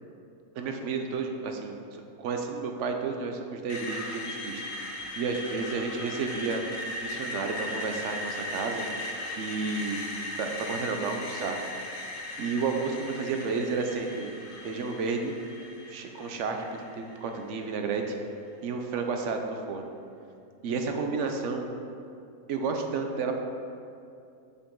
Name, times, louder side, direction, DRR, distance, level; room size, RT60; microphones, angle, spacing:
voice 1, 0.6-4.6 5.2-6.6 7.0-8.9 9.4-10.0 10.4-11.6 12.4-14.3 14.6-15.3 15.9-16.6 16.9-18.2 18.6-19.9 20.6-21.7 22.5-23.4, right 4 dB, 65° right, 4 dB, 0.8 m, -31 dB
Screech, 3.7-17.6, left 1 dB, 65° left, 1.3 m, -38 dB
6.7 x 5.4 x 3.7 m, 2.5 s
omnidirectional pair, 1.5 m